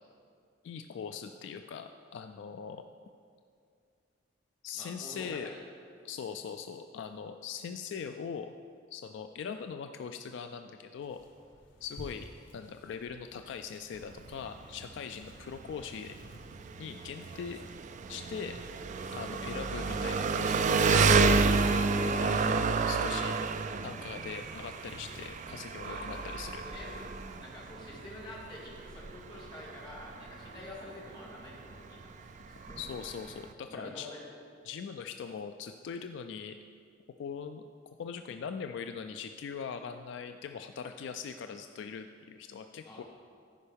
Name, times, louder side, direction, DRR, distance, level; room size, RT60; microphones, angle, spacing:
voice 1, 0.6-2.8 4.6-5.5 6.0-8.5 8.9-11.2 11.8-12.3 12.5-16.1 16.8-17.6 18.1-18.6 19.1-21.5 22.2-23.4 23.8-26.6 32.8-34.1 34.6-36.6 37.2-37.6 38.0-43.0, left 6 dB, 65° left, 7 dB, 0.3 m, -41 dB
voice 2, 4.7-5.6 22.4-22.6 25.8-32.8 33.7-34.2 42.8-43.0, left 1 dB, 25° left, -6 dB, 2.1 m, -47 dB
sound 1, 11.0-27.6, left 1 dB, 85° left, 1.3 m, -54 dB
Engine, 13.9-33.5, right 4 dB, 40° right, 0.3 m, -30 dB
14.0 x 5.4 x 3.4 m, 2.3 s
head